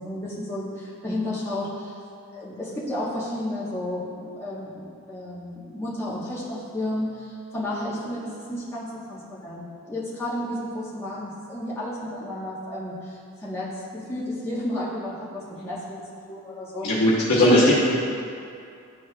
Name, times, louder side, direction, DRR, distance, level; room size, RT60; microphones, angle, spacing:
voice 1, 0.0-1.9 2.3-16.0 16.3-16.9 17.5-17.7, left 1 dB, 10° left, -7 dB, 1.1 m, -32 dB
voice 2, 16.8-17.7, left 1 dB, 70° left, -11 dB, 1.2 m, -18 dB
11.5 x 4.2 x 2.3 m, 2.4 s
head